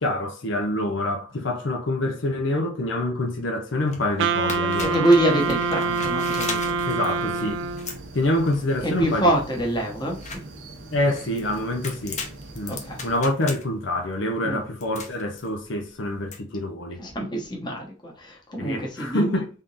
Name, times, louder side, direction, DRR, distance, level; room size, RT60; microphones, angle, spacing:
voice 1, 0.0-5.0 6.9-7.6 8.1-9.3 10.9-12.3 12.6-17.0 18.6-19.5, left 1 dB, 80° left, 0.8 m, -26 dB
sound 1, 3.7-16.4, left 4 dB, 40° left, 0.8 m, -39 dB
Wind instrument woodwind instrument, 4.2-8.0, right 4 dB, 70° right, 0.4 m, -25 dB
voice 2, 4.8-6.8 8.8-10.5 12.7-13.0 14.4-14.6 17.0-19.3, right 1 dB, 25° left, 1.2 m, -25 dB
sound 2, 5.1-13.2, right 2 dB, 90° right, 0.8 m, -42 dB
3.7 x 3.6 x 2.6 m
head